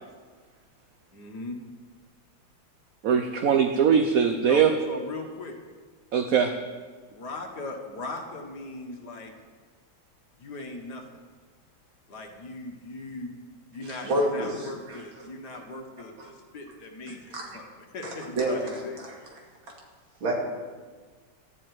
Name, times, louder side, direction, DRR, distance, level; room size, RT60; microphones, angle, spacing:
voice 1, 1.1-1.6 4.5-5.5 7.1-9.3 10.4-11.2 12.1-13.3 13.7-19.0, left 2 dB, 55° left, 3 dB, 2.0 m, -39 dB
voice 2, 3.0-4.7 6.1-6.5, right 7 dB, 60° right, 6 dB, 1.0 m, -21 dB
voice 3, 13.8-15.0 16.2-16.3 17.3-17.5 18.4-19.4 20.2-20.4, right 1 dB, 75° right, -1 dB, 3.3 m, -29 dB
13.0 x 7.7 x 9.4 m, 1.5 s
omnidirectional pair, 2.2 m